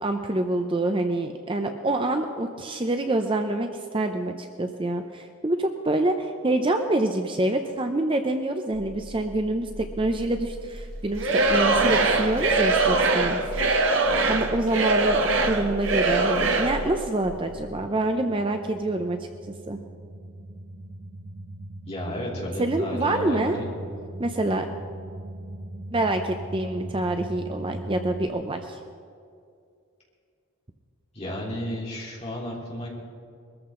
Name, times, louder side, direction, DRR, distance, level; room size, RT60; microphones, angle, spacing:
voice 1, 0.0-13.4 14.3-19.3 19.7-19.8 22.6-23.6 24.2-24.7 25.9-28.8, right 2 dB, 25° right, 6 dB, 0.6 m, -26 dB
sound 1, 8.7-28.3, equal, 45° right, 1.1 m, -39 dB
Singing / Crowd, 11.2-16.8, right 3 dB, 60° right, 1.2 m, -22 dB
voice 2, 21.9-23.7 31.1-32.9, left 1 dB, 30° left, -5 dB, 3.7 m, -32 dB
22.0 x 14.0 x 3.8 m, 2.3 s
head